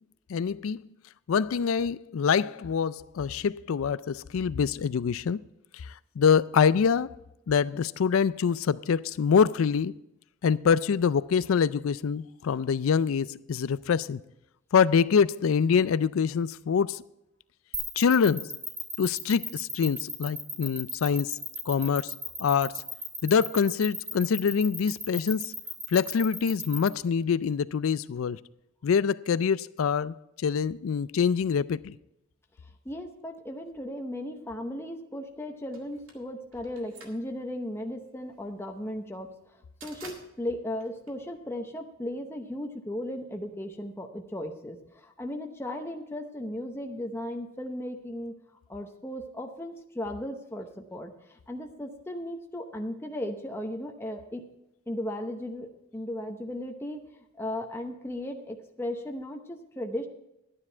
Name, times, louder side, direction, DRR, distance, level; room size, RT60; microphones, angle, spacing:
voice 1, 0.3-0.8 1.3-5.4 6.2-7.1 7.5-9.9 10.4-14.2 14.7-17.0 18.0-18.5 19.0-21.4 21.7-22.1 22.4-22.8 23.2-25.5 25.9-28.4 28.8-31.9, left 6 dB, 80° left, 0.4 m, -25 dB
sound 1, 17.7-26.9, right 1 dB, 15° right, 1.9 m, -35 dB
voice 2, 32.8-39.3 39.8-48.3 48.7-54.4 54.9-57.0 57.4-60.1, left 1 dB, 10° left, 0.8 m, -36 dB
sound 2, 35.7-41.9, right 3 dB, 80° right, 2.1 m, -51 dB
12.0 x 9.9 x 4.4 m
head